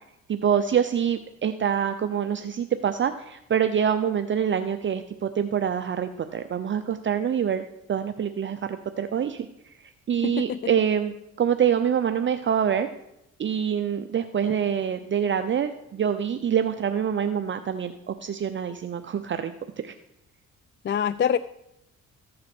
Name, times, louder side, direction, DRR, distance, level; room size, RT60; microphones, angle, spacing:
voice 1, 0.3-7.6 7.9-9.5 10.1-12.9 13.4-19.5 19.8-19.9, right 8 dB, 40° right, 8 dB, 0.7 m, -25 dB
voice 2, 10.2-10.6 20.8-21.4, left 8 dB, 40° left, 16 dB, 0.4 m, -24 dB
14.5 x 7.6 x 6.1 m, 0.85 s
cardioid pair, 90°, 30 cm